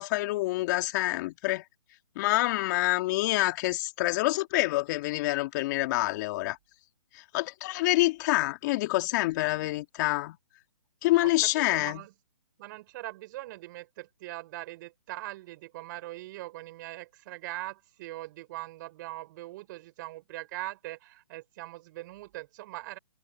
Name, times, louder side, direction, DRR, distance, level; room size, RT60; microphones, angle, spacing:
voice 1, 0.0-1.6 2.2-6.6 7.1-10.4 11.0-12.0, left 19 dB, 30° left, 2.7 m, -27 dB
voice 2, 11.2-12.1 12.6-23.0, right 18 dB, 35° right, 6.2 m, -41 dB
hypercardioid pair, 145°, 18 cm